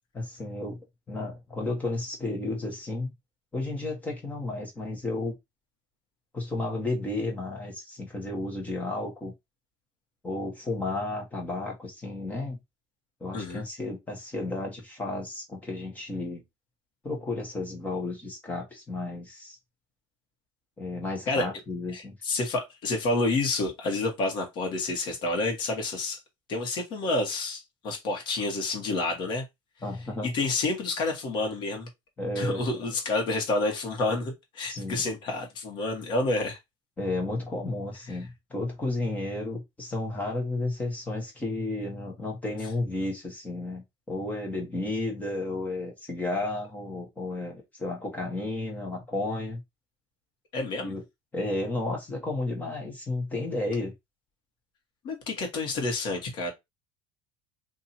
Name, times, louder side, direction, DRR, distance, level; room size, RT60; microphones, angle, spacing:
voice 1, 0.1-0.8 1.1-3.1 3.5-5.4 6.3-9.3 10.2-12.6 13.2-16.4 17.0-19.6 20.8-22.1 29.8-30.3 32.2-32.7 34.6-35.1 37.0-49.6 50.8-51.0 51.3-53.9, left 2 dB, 15° left, 1.3 m, -32 dB
voice 2, 13.3-13.6 21.3-21.5 21.9-26.2 26.5-29.4 30.2-31.9 32.3-36.6 38.1-38.2 50.5-50.9 55.0-56.5, left 2 dB, 45° left, 1.4 m, -29 dB
2.8 x 2.7 x 4.2 m
cardioid pair, 160°, 11 cm